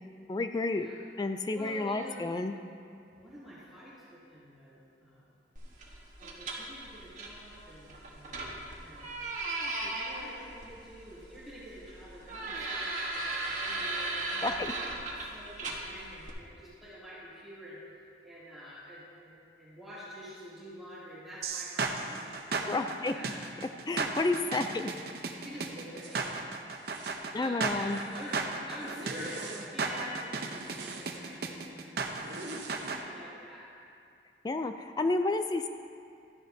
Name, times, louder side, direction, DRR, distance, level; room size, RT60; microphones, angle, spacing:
voice 1, 0.3-0.9 1.2-2.5 14.4-14.7 22.7-23.1 23.9-24.9 27.3-28.0 34.4-35.7, left 2 dB, 25° left, 7 dB, 0.3 m, -30 dB
voice 2, 1.5-2.2 3.1-5.3 6.2-9.2 9.8-17.8 18.2-23.4 25.3-26.3 27.3-28.4 28.7-33.7, equal, ahead, -11 dB, 2.6 m, -47 dB
sound 1, 5.6-16.3, right 2 dB, 45° right, 1.3 m, -38 dB
sound 2, 21.4-33.0, right 4 dB, 60° right, 0.7 m, -35 dB
Zipper (clothing), 26.0-26.3 26.8-27.2 27.7-28.4 28.8-29.7 30.3-31.2 32.0-33.0, right 2 dB, 80° right, 1.0 m, -45 dB
13.5 x 10.0 x 2.7 m, 2.4 s
head